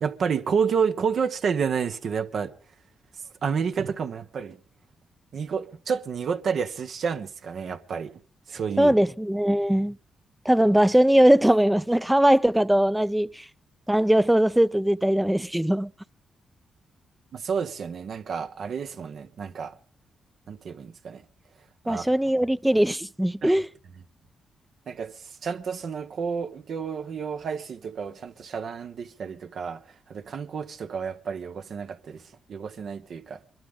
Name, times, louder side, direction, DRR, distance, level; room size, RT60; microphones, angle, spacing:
voice 1, 0.0-2.5 3.4-4.6 5.3-8.1 8.5-8.9 17.3-19.8 20.5-21.2 21.8-22.0 23.4-23.6 24.9-29.8 30.1-32.2 32.5-33.4, right 6 dB, 65° right, 1.4 m, -30 dB
voice 2, 8.8-10.0 10.4-13.5 13.9-15.9 21.9-23.7, right 1 dB, 10° right, 0.6 m, -20 dB
24.0 x 12.5 x 3.9 m
hypercardioid pair, 45°, 0 cm